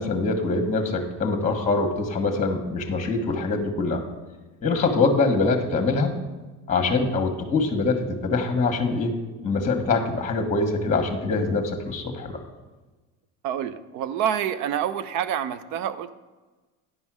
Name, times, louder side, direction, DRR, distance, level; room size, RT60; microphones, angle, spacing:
voice 1, 0.0-4.0 4.6-6.2 6.7-9.1 9.4-12.4, left 3 dB, 25° left, 4 dB, 1.4 m, -24 dB
voice 2, 13.4-16.2, right 9 dB, 65° right, 14 dB, 0.7 m, -27 dB
10.0 x 5.4 x 6.2 m, 1.2 s
supercardioid pair, 110°, 31 cm